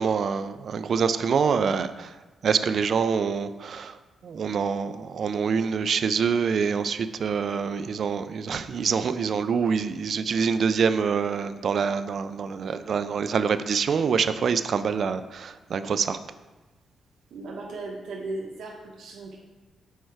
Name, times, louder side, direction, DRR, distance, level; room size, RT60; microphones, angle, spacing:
voice 1, 0.0-2.1 2.4-16.2, right 6 dB, 55° right, 11 dB, 0.3 m, -26 dB
voice 2, 17.3-19.4, right 2 dB, 90° right, -3 dB, 1.0 m, -36 dB
6.4 x 4.5 x 4.6 m, 1.2 s
wide cardioid pair, 145°, 0 cm